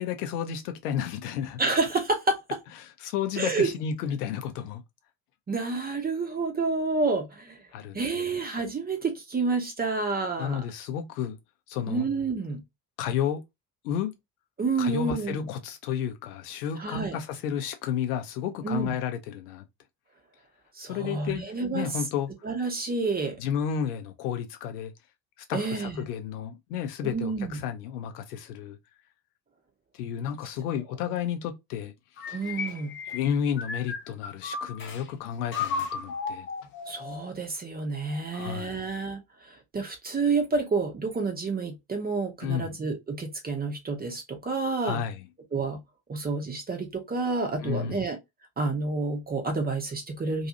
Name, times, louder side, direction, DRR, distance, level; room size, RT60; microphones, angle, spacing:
voice 1, 0.0-1.6 3.0-4.8 7.7-8.4 10.4-11.4 11.7-12.1 13.0-13.4 13.8-14.1 14.8-19.6 20.9-21.4 21.7-22.3 23.4-24.9 25.5-28.8 30.0-31.9 33.1-36.5 38.3-38.8 42.4-42.8 44.8-45.3 47.6-48.1, left 8 dB, 65° left, 0.7 m, -32 dB
voice 2, 1.6-2.6 3.4-3.7 5.5-7.6 7.9-10.6 11.9-12.6 14.6-15.5 16.8-17.2 18.6-18.9 20.8-21.9 22.4-23.4 25.5-26.1 27.0-27.6 32.3-33.0 36.9-39.2 39.7-45.0 45.5-45.8 46.1-48.2 48.6-50.5, right 3 dB, 20° right, 0.8 m, -29 dB
sound 1, 32.2-35.0 35.5-37.3, left 5 dB, 25° left, 0.6 m, -34 dB
2.7 x 2.3 x 2.7 m
figure-of-eight pair, 55°, 49 cm